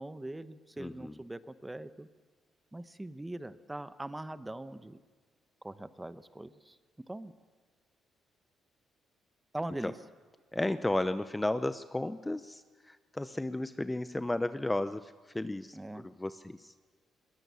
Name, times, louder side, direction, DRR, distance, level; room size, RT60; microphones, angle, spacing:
voice 1, 0.0-2.1 2.7-5.0 5.6-6.8 7.1-7.3 9.5-9.9 15.7-16.0, right 1 dB, 10° right, 12 dB, 0.9 m, -41 dB
voice 2, 0.8-1.1 9.8-9.9 10.5-16.7, left 1 dB, 10° left, 11 dB, 0.7 m, -34 dB
21.5 x 19.5 x 7.0 m, 1.4 s
cardioid pair, 90°, 0 cm